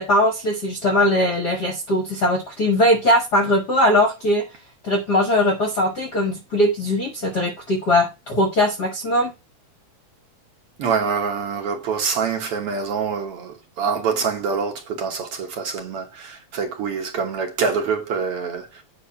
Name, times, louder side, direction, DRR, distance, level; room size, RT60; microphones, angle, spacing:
voice 1, 0.0-4.4 4.8-9.3, left 1 dB, 55° left, 1.1 m, -20 dB
voice 2, 10.8-18.8, right 5 dB, 60° right, 1.9 m, -25 dB
8.5 x 2.9 x 5.6 m
omnidirectional pair, 3.3 m